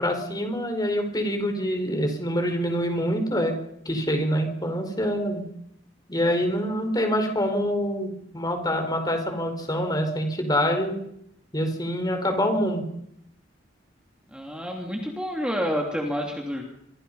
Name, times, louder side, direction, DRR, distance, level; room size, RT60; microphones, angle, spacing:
voice 1, 0.0-3.6 3.8-5.4 6.1-11.0 11.5-12.8, equal, 20° left, 5 dB, 5.0 m, -25 dB
voice 2, 14.3-16.6, equal, 5° right, 1 dB, 3.0 m, -29 dB
26.5 x 25.0 x 5.6 m, 0.75 s
head